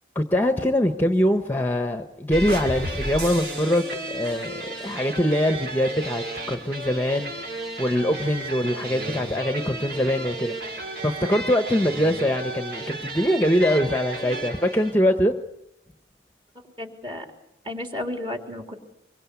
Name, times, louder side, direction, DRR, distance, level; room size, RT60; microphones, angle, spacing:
voice 1, 0.1-4.5 4.8-7.3 7.8-15.3, equal, 10° left, 7 dB, 1.1 m, -23 dB
sound 1, 2.3-14.9, right 2 dB, 60° right, 5.4 m, -33 dB
voice 2, 16.8-17.2 17.6-18.8, left 1 dB, 25° right, 4 dB, 3.4 m, -32 dB
25.5 x 23.5 x 8.4 m, 0.81 s
head